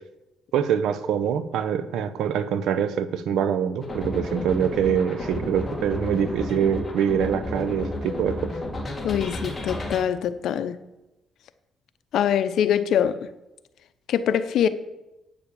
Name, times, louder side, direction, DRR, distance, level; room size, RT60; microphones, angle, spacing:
voice 1, 0.5-8.5, right 8 dB, 80° right, 0.8 m, -24 dB
sound 1, 3.8-10.0, left 1 dB, 20° left, 2.2 m, -32 dB
voice 2, 9.0-10.8 12.1-13.2 14.1-14.7, left 9 dB, 75° left, 0.7 m, -23 dB
9.0 x 6.9 x 7.0 m
cardioid pair, 90°, 0 cm